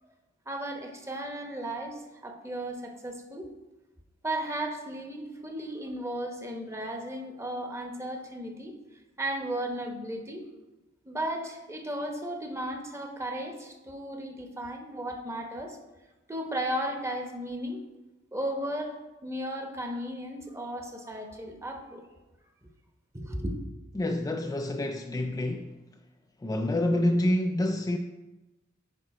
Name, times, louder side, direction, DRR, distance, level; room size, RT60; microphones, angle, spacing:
voice 1, 0.5-3.5 4.2-8.7 9.2-10.5 11.0-15.8 16.3-17.8 18.3-22.1 23.1-23.6, right 1 dB, 15° right, 0.9 m, -35 dB
voice 2, 24.0-25.7 26.4-28.0, left 1 dB, 15° left, 0.3 m, -27 dB
9.5 x 5.2 x 4.2 m
head